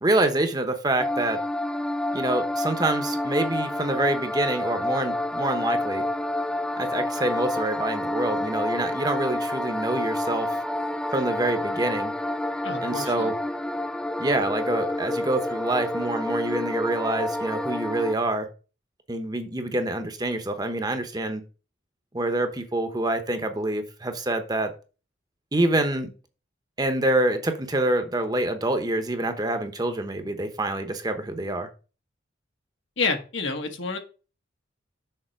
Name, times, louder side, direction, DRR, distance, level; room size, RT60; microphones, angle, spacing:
voice 1, 0.0-1.4 2.1-6.0 6.8-10.6 11.1-12.1 12.8-13.3 14.2-18.5 19.1-21.4 22.1-24.7 25.5-26.1 26.8-31.7, right 2 dB, 20° right, 7 dB, 0.9 m, -26 dB
sound 1, 1.0-18.1, left 1 dB, 5° left, 0.3 m, -29 dB
voice 2, 12.6-13.3 33.0-34.0, left 4 dB, 80° left, 5 dB, 1.5 m, -29 dB
6.7 x 4.1 x 5.9 m, 0.34 s
head